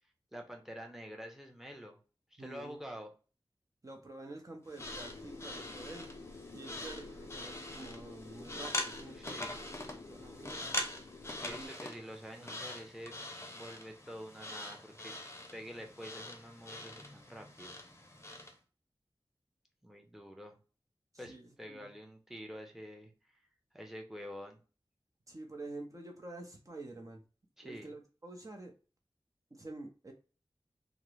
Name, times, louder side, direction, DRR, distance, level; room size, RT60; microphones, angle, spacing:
voice 1, 0.3-2.0 2.3-3.1 9.2-9.5 11.4-13.1 13.5-15.2 15.5-17.7 19.8-20.6 21.2-23.1 23.7-24.6 27.6-27.9, equal, 5° right, 2 dB, 0.8 m, -47 dB
voice 2, 2.4-2.8 3.8-6.1 6.5-10.7 11.4-11.7 12.4-12.5 21.1-21.9 25.3-27.2 27.6-28.7 29.5-30.1, right 2 dB, 40° right, 3 dB, 0.7 m, -48 dB
sound 1, 4.7-18.6, left 1 dB, 30° left, 0.6 m, -43 dB
sound 2, 4.8-11.7, left 3 dB, 80° left, 0.5 m, -50 dB
3.5 x 2.0 x 3.2 m, 0.36 s
wide cardioid pair, 55°, 9 cm